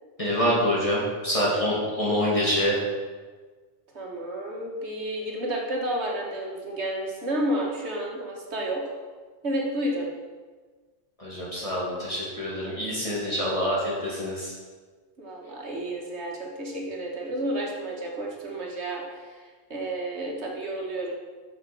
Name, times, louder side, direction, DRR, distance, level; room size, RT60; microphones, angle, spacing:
voice 1, 0.2-2.8 11.2-14.5, equal, 30° left, -7 dB, 2.3 m, -26 dB
voice 2, 3.9-8.8 9.4-10.1 15.2-21.1, right 1 dB, 70° right, -1 dB, 1.7 m, -31 dB
7.5 x 6.8 x 6.0 m, 1.4 s
omnidirectional pair, 1.2 m